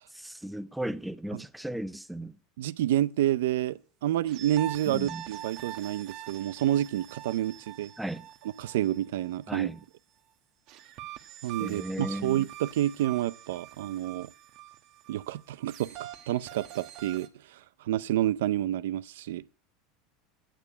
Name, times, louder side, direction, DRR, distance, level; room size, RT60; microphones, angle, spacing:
voice 1, 0.2-2.3 4.9-5.2 8.0-8.2 9.5-9.8 11.6-12.4, right 1 dB, 5° right, 0.5 m, -35 dB
voice 2, 2.6-7.9 8.6-9.7 11.4-14.3 15.1-17.6 17.8-19.4, right 13 dB, 90° right, 0.5 m, -29 dB
sound 1, 4.3-9.8 10.7-17.3, right 12 dB, 50° right, 1.2 m, -44 dB
9.2 x 6.8 x 8.3 m
supercardioid pair, 140°, 0 cm